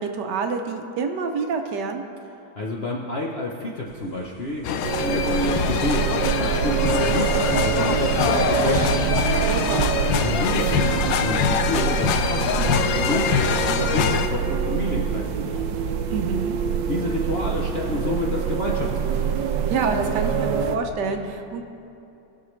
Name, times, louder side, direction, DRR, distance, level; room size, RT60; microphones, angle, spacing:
voice 1, 0.0-2.0 9.4-9.9 16.1-16.6 19.7-21.7, right 5 dB, 70° right, 5 dB, 1.3 m, -27 dB
voice 2, 2.6-8.9 10.2-15.6 16.9-19.3, left 1 dB, 55° left, -2 dB, 0.7 m, -29 dB
sound 1, 3.9-8.9, left 1 dB, 15° left, 2.7 m, -42 dB
sound 2, 4.6-14.3, left 8 dB, 80° left, 1.3 m, -24 dB
sound 3, 4.8-20.8, right 6 dB, 85° right, 1.4 m, -25 dB
19.0 x 6.6 x 3.1 m, 2.7 s
omnidirectional pair, 2.0 m